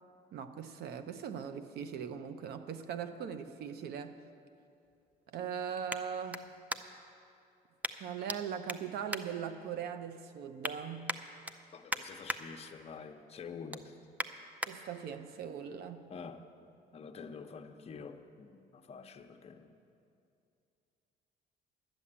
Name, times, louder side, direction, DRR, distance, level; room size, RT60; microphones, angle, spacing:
voice 1, 0.3-4.2 5.3-6.6 8.0-11.2 14.7-16.1, right 7 dB, 70° right, 10 dB, 0.8 m, -40 dB
sound 1, 4.6-7.2 7.8-8.4 8.6-10.0 10.3-10.7 11.1-12.4 12.8-13.1 13.4-14.7 15.3-15.4, right 1 dB, 10° right, 0.5 m, -41 dB
voice 2, 11.7-13.9 16.1-16.4 16.9-19.8, left 5 dB, 40° left, 5 dB, 0.8 m, -47 dB
12.0 x 7.1 x 8.7 m, 2.6 s
cardioid pair, 110°, 17 cm